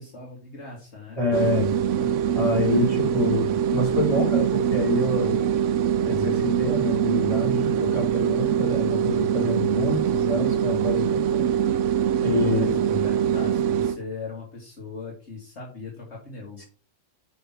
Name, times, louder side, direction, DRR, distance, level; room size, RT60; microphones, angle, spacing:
voice 1, 0.0-1.2 1.5-2.1 2.7-2.9 12.4-12.8 13.0-16.6, left 3 dB, 65° left, -2 dB, 2.2 m, -39 dB
voice 2, 1.2-1.7 2.3-5.4 6.0-11.5 12.2-13.0 16.6-16.7, left 2 dB, 30° left, -3 dB, 4.0 m, -27 dB
sound 1, 1.3-14.0, right 9 dB, 85° right, 0.9 m, -23 dB
6.7 x 5.5 x 5.9 m, 0.39 s
omnidirectional pair, 1.3 m